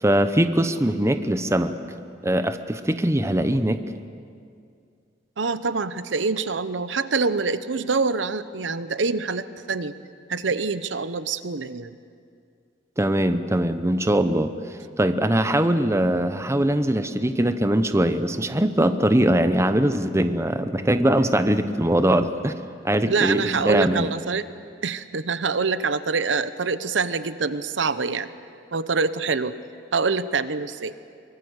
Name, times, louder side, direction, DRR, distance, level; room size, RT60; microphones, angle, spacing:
voice 1, 0.0-1.7 2.2-3.8 13.0-14.5 15.0-22.5 22.8-24.1, right 1 dB, 15° right, 10 dB, 0.9 m, -21 dB
voice 2, 5.4-9.9 10.3-12.0 23.0-24.4 24.8-28.3 28.7-29.6 29.9-30.9, right 4 dB, 90° right, 13 dB, 0.9 m, -25 dB
24.0 x 22.5 x 8.2 m, 2.3 s
head